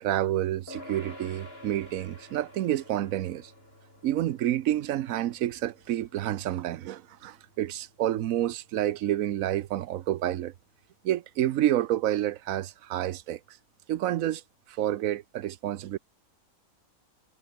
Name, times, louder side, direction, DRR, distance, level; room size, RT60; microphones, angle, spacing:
voice 1, 0.0-3.5 4.0-10.5 11.0-13.6 13.9-14.4 14.7-16.0, right 13 dB, 70° right, 1.1 m, -29 dB
sound 1, 0.7-10.4, left 1 dB, 40° left, 6.7 m, -51 dB
omnidirectional pair, 1.5 m